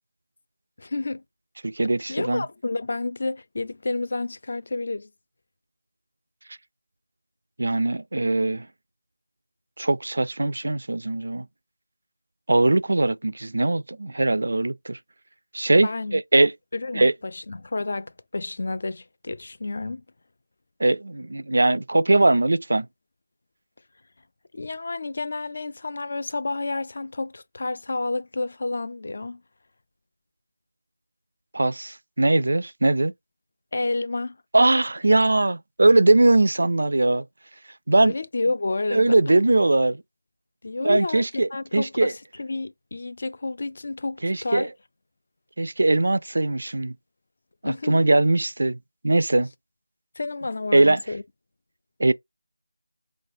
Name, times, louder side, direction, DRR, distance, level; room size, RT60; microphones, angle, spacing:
voice 1, 0.8-1.2 2.1-5.1 15.8-20.0 24.5-29.4 33.7-34.4 38.0-39.3 40.6-44.7 47.6-48.0 50.2-51.2, left 3 dB, 50° left, 0.4 m, -30 dB
voice 2, 1.6-2.4 7.6-8.7 9.8-11.5 12.5-15.0 15.5-16.5 16.9-17.1 20.8-22.9 31.5-33.1 34.5-37.3 37.9-38.1 38.9-40.0 40.8-42.1 44.2-44.7 45.6-46.9 47.6-48.8 49.0-49.5 50.7-51.0 52.0-52.1, right 2 dB, 60° right, 0.3 m, -20 dB
3.9 x 3.2 x 2.7 m
figure-of-eight pair, 170°, 0 cm